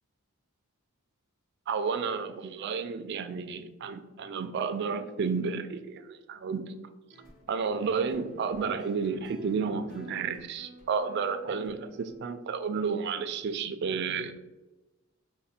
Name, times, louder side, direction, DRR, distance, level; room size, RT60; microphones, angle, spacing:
voice 1, 1.7-6.6 7.5-14.4, right 5 dB, 50° right, 10 dB, 0.3 m, -31 dB
sound 1, 7.1-12.2, equal, 45° left, 1.3 m, -51 dB
4.2 x 2.1 x 4.1 m, 1.1 s
head